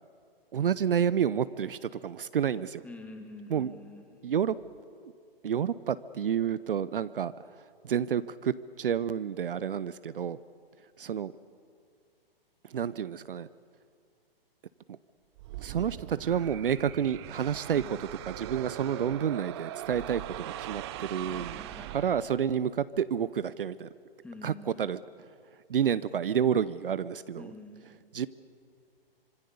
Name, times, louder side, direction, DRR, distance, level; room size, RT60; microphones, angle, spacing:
voice 1, 0.5-2.8 3.5-3.7 4.2-4.6 5.0-5.1 5.4-7.3 7.8-10.4 11.0-11.3 12.7-13.5 14.9-15.0 15.6-21.6 21.9-23.9 24.4-25.0 25.7-27.5 28.1-28.3, right 8 dB, 65° right, 17 dB, 0.7 m, -29 dB
voice 2, 2.8-4.2 17.8-17.9 21.3-22.3 24.2-24.9 27.4-28.1, left 2 dB, 5° left, 4 dB, 2.2 m, -47 dB
sound 1, 15.4-22.6, right 14 dB, 25° right, 0.7 m, -41 dB
26.0 x 23.5 x 6.9 m, 2.3 s
figure-of-eight pair, 125°, 30 cm